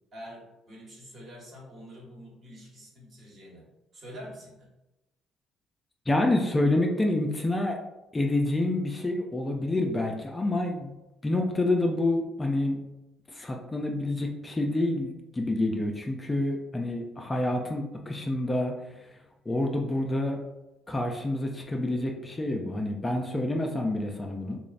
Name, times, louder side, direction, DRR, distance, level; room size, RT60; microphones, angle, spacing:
voice 1, 0.1-3.6 3.9-4.7, equal, 50° right, -4 dB, 1.0 m, -46 dB
voice 2, 6.1-7.8 8.1-10.9 11.2-12.8 13.3-18.7 19.5-20.4 20.9-24.6, left 2 dB, 20° left, 1 dB, 0.3 m, -28 dB
3.0 x 2.0 x 2.4 m, 0.95 s
cardioid pair, 100°, 0 cm